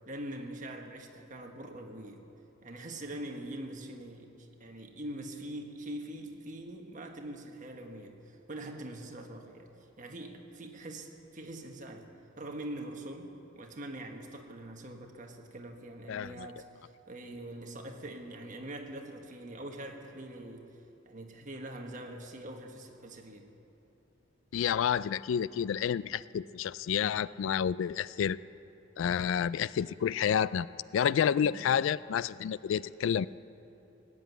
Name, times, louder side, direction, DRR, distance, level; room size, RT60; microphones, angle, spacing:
voice 1, 0.1-2.2 2.6-9.7 10.0-12.1 12.4-20.7 21.0-23.5 31.0-31.7, right 1 dB, 40° right, 3 dB, 1.4 m, -43 dB
voice 2, 16.1-16.5 24.5-28.4 29.0-30.7 30.9-33.3, left 8 dB, 75° left, 18 dB, 0.3 m, -29 dB
18.0 x 8.0 x 9.2 m, 3.0 s
head